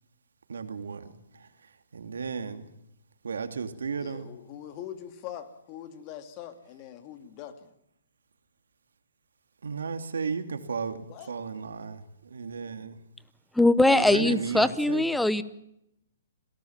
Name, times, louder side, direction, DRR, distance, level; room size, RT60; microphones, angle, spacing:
voice 1, 0.5-1.1 1.9-2.7 3.2-4.3 9.6-11.0 11.3-12.0 12.3-13.0 13.9-15.0, right 5 dB, 85° right, 8 dB, 2.8 m, -34 dB
voice 2, 4.0-7.7 11.1-11.3, left 10 dB, 30° left, 9 dB, 2.5 m, -42 dB
voice 3, 13.6-15.4, left 2 dB, ahead, 15 dB, 0.9 m, -21 dB
26.5 x 18.0 x 7.4 m, 0.79 s
hypercardioid pair, 160°, 0 cm